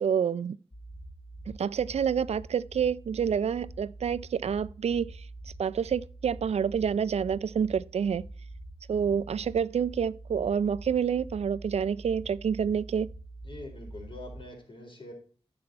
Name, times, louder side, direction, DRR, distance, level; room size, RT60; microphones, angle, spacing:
voice 1, 0.0-0.6 1.5-5.3 5.6-8.3 8.9-13.1, right 7 dB, 90° right, 0.4 m, -28 dB
sound 1, 0.7-14.4, right 2 dB, 20° left, 2.2 m, -45 dB
voice 2, 13.4-15.1, left 2 dB, 55° left, 4.3 m, -44 dB
10.5 x 6.9 x 4.4 m
wide cardioid pair, 95°, 11 cm